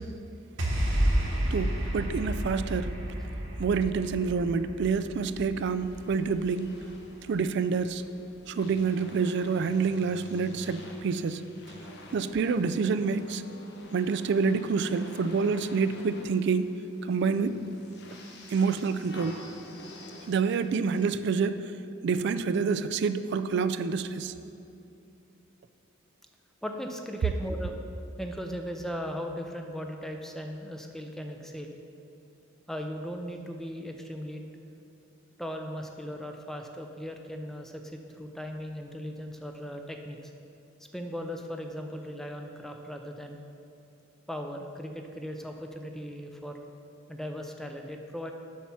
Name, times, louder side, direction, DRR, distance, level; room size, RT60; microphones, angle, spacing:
sound 1, 0.6-7.0, equal, 75° right, 1.3 m, -31 dB
voice 1, 1.5-2.9 3.6-6.8 7.3-8.0 8.5-11.4 12.1-13.4 13.9-16.8 17.1-17.6 18.5-19.4 20.3-21.7 22.0-24.3, right 5 dB, 60° right, 12 dB, 0.3 m, -27 dB
sound 2, 5.6-21.0, equal, 60° left, 1.0 m, -48 dB
voice 2, 26.6-27.8 28.2-31.7 32.7-34.4 35.4-40.3 40.9-43.4 44.3-46.6 47.1-48.3, equal, ahead, 3 dB, 0.5 m, -38 dB
7.4 x 5.8 x 5.8 m, 2.8 s
head